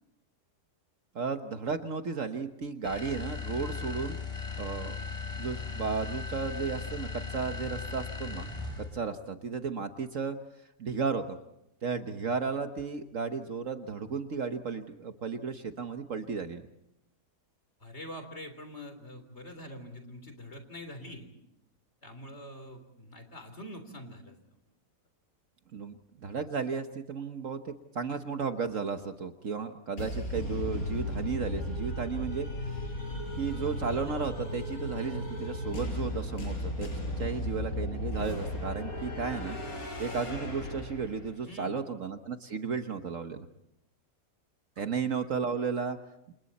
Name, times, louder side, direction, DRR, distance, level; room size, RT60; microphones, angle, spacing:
voice 1, 1.1-4.2 4.6-5.0 5.4-8.5 8.8-10.4 10.8-11.4 11.8-16.6 25.7-32.9 33.4-36.9 37.2-39.6 40.0-43.5 44.8-46.0, right 5 dB, 55° right, 7 dB, 1.4 m, -34 dB
sound 1, 2.8-9.0, left 4 dB, 20° left, 6.7 m, -37 dB
voice 2, 17.8-21.3 22.0-24.6 41.5-41.8 44.8-44.9, left 1 dB, 40° left, 7 dB, 3.8 m, -45 dB
sound 2, 30.0-41.4, left 1 dB, 60° left, 5.6 m, -35 dB
29.0 x 28.0 x 4.2 m, 0.81 s
omnidirectional pair, 1.7 m